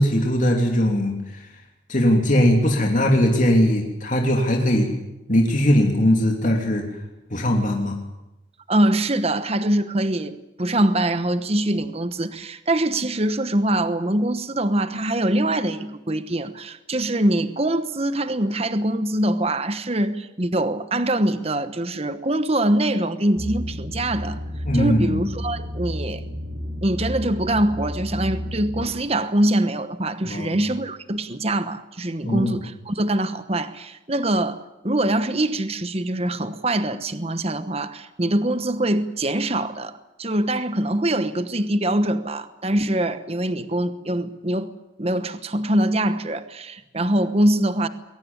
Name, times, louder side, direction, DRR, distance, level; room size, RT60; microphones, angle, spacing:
voice 1, 0.0-1.4 1.9-4.9 5.3-6.9 7.3-8.0 24.6-25.2 30.2-30.6 32.2-32.6, equal, 40° left, 1 dB, 3.0 m, -20 dB
voice 2, 8.7-24.4 24.7-26.2 26.8-44.7 45.0-47.9, right 1 dB, 30° right, 11 dB, 1.1 m, -23 dB
sound 1, 23.4-28.9, left 1 dB, 70° right, 7.8 m, -31 dB
22.5 x 17.5 x 9.7 m, 0.96 s
head